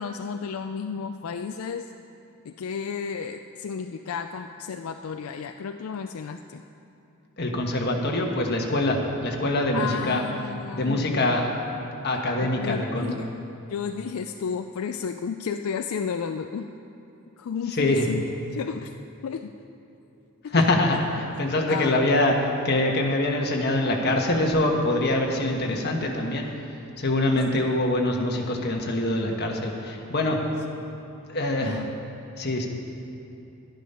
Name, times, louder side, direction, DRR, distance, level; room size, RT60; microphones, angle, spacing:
voice 1, 0.0-1.9 2.4-6.6 9.7-11.0 12.4-13.3 13.7-16.8 17.4-18.2 18.5-18.9 19.2-19.5 20.4-20.7 21.7-22.0 27.3-27.4 31.6-32.0, left 6 dB, 80° left, 7 dB, 0.4 m, -32 dB
voice 2, 7.4-10.2 10.7-11.5 12.0-13.1 17.8-18.0 20.5-22.3 22.6-30.4 31.3-31.8 32.4-32.7, left 1 dB, 50° left, 1 dB, 1.3 m, -24 dB
11.5 x 10.5 x 5.6 m, 2.9 s
head